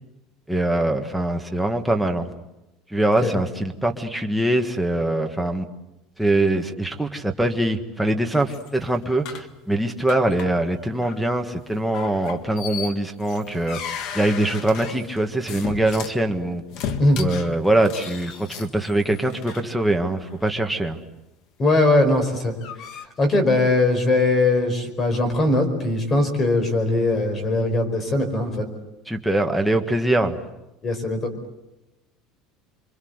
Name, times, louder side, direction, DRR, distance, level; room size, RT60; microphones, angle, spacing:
voice 1, 0.5-2.3 2.9-5.7 6.2-16.6 17.2-21.0 29.1-30.4, right 1 dB, ahead, 3 dB, 1.6 m, -23 dB
sound 1, 8.3-9.5 10.1-10.7 10.9-11.2 11.9-16.2 16.7-19.6 20.3-20.5 22.1-23.1, left 7 dB, 50° left, 1.9 m, -35 dB
voice 2, 21.6-22.6 23.2-28.7 30.8-31.2, left 2 dB, 25° left, 9 dB, 4.8 m, -20 dB
27.0 x 24.5 x 8.1 m, 0.96 s
cardioid pair, 165°, 0 cm